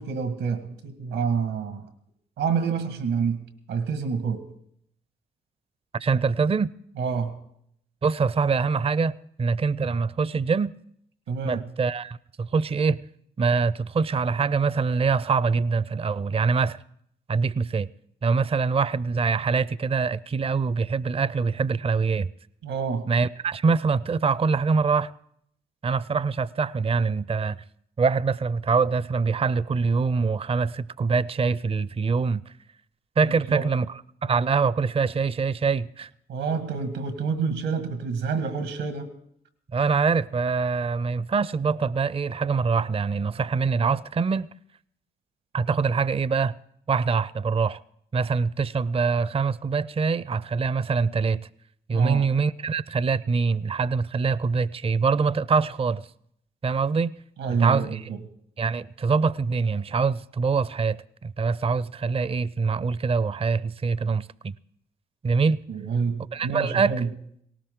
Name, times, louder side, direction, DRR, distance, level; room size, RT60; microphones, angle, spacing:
voice 1, 0.0-1.9 2.4-4.4 7.0-7.4 11.3-11.6 22.6-23.1 33.2-33.7 36.3-39.1 51.9-52.3 57.4-58.2 65.7-67.1, right 5 dB, 85° right, 1.7 m, -28 dB
voice 2, 5.9-6.7 8.0-10.7 11.4-13.0 13.4-16.8 17.3-17.9 18.2-22.3 23.1-25.1 25.8-27.6 28.0-32.4 33.2-33.9 34.2-36.1 39.7-44.5 45.5-46.5 46.9-47.8 48.1-51.5 51.9-56.1 56.6-57.2 57.5-58.1 58.6-61.0 61.2-64.5 65.2-65.6 66.3-66.9, right 5 dB, 30° right, 0.5 m, -24 dB
18.5 x 18.0 x 3.8 m
supercardioid pair, 45°, 20 cm